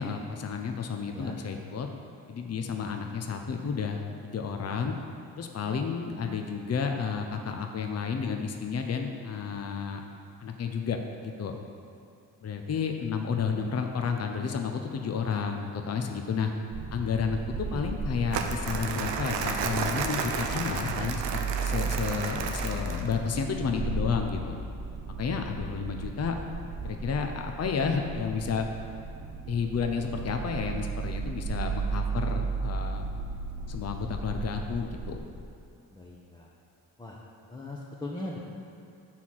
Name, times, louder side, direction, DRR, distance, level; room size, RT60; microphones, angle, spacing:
voice 1, 0.0-1.9 2.3-5.0 5.3-10.0 10.4-11.6 12.4-16.5 16.9-24.6 25.2-26.4 26.8-28.7 29.5-33.1 33.7-35.3, left 6 dB, 35° left, 4 dB, 0.7 m, -31 dB
voice 2, 6.3-6.7 13.4-13.7 17.5-17.8 22.5-23.1 23.6-24.0 35.9-36.5 37.0-37.2 37.5-38.4, left 2 dB, 10° left, -4 dB, 0.9 m, -41 dB
sound 1, 16.7-35.2, right 4 dB, 40° right, 0.8 m, -35 dB
Crumpling crinkling, 18.3-23.2, right 5 dB, 85° right, 0.6 m, -32 dB
5.6 x 4.2 x 6.2 m, 2.5 s
supercardioid pair, 50°, 43 cm